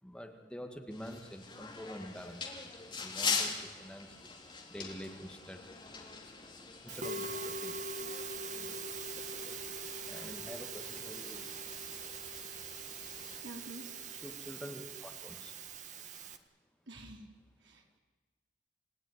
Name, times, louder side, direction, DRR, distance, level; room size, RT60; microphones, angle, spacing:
voice 1, 0.0-4.3 4.7-5.7 6.8-7.9 8.4-9.6 10.1-11.9 14.1-15.5, equal, 5° left, 3 dB, 1.9 m, -48 dB
sound 1, 0.9-13.4, left 5 dB, 25° left, 3.1 m, -42 dB
Musical instrument, 6.9-16.4, right 4 dB, 40° right, 1.5 m, -42 dB
voice 2, 13.4-14.0 16.9-17.2 17.6-18.0, right 2 dB, 75° right, 1 dB, 4.4 m, -48 dB
29.5 x 17.5 x 9.8 m, 1.4 s
head